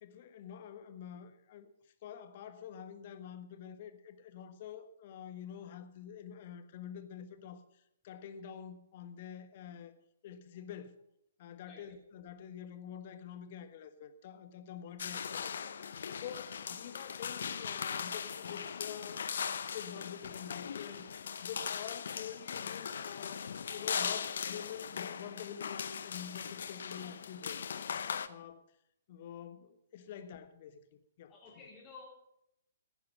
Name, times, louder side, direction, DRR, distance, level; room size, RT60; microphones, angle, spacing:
voice 1, 0.0-1.7 2.0-7.6 8.0-10.0 10.2-11.0 11.4-15.5 16.2-19.3 19.6-21.1 21.4-27.6 28.3-28.7 29.1-30.8 31.2-31.3, left 8 dB, 45° left, 1.3 m, -47 dB
voice 2, 11.6-12.0 30.0-30.1 31.3-32.0, left 4 dB, 20° left, 3.3 m, -54 dB
sound 1, 15.0-28.3, left 7 dB, 60° left, 0.8 m, -39 dB
15.0 x 10.0 x 5.8 m
figure-of-eight pair, 125°, 0 cm